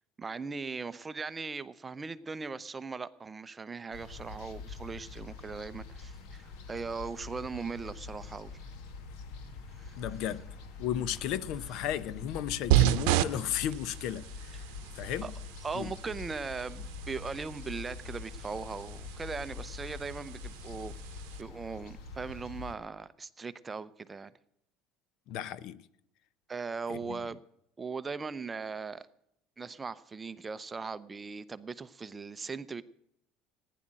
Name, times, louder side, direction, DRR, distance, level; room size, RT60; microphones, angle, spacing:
voice 1, 0.2-8.5 9.8-10.0 15.2-15.3 15.6-20.9 21.4-24.3 26.5-27.4 27.8-29.1 29.6-32.8, right 4 dB, 20° right, 0.6 m, -39 dB
sound 1, 3.9-22.7, left 4 dB, 80° left, 2.1 m, -45 dB
voice 2, 10.0-10.4 10.8-14.7 15.0-15.3 15.7-15.9 25.3-25.9 26.9-27.2, left 10 dB, 65° left, 0.8 m, -34 dB
sound 2, 12.7-21.4, right 13 dB, 85° right, 0.7 m, -33 dB
15.5 x 10.0 x 7.5 m
cardioid pair, 140°, 0 cm